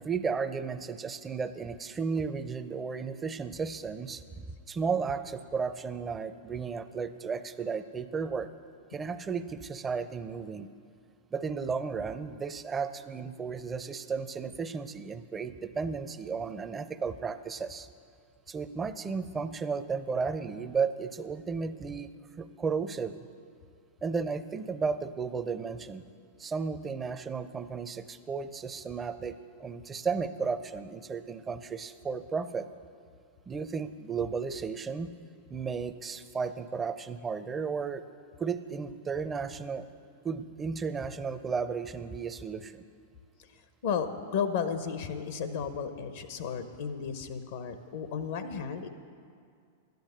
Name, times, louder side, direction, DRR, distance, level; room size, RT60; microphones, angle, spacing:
voice 1, 0.0-4.2 4.7-8.5 8.9-10.7 11.3-17.9 18.5-22.1 22.4-23.2 24.0-26.0 26.4-32.7 33.5-35.1 35.5-38.0 38.4-39.9 40.2-42.8, right 5 dB, 20° right, 11 dB, 0.6 m, -34 dB
voice 2, 43.8-48.9, left 7 dB, 70° left, 9 dB, 0.7 m, -33 dB
11.5 x 9.3 x 6.6 m, 2.3 s
hypercardioid pair, 110°, 0 cm